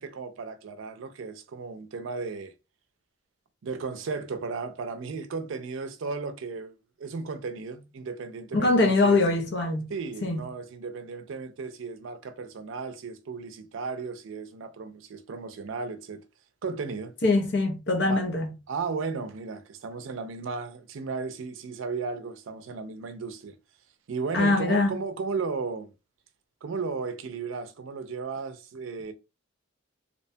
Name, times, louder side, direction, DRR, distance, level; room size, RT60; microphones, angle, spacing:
voice 1, 0.0-2.5 3.6-9.2 9.9-16.2 16.6-17.1 18.1-18.2 18.7-23.5 24.1-25.9 26.6-29.1, right 4 dB, 80° right, 0.4 m, -35 dB
voice 2, 8.5-9.9 10.2-10.5 17.2-18.5 24.3-25.0, left 2 dB, 60° left, 0.7 m, -23 dB
2.8 x 2.2 x 2.6 m
head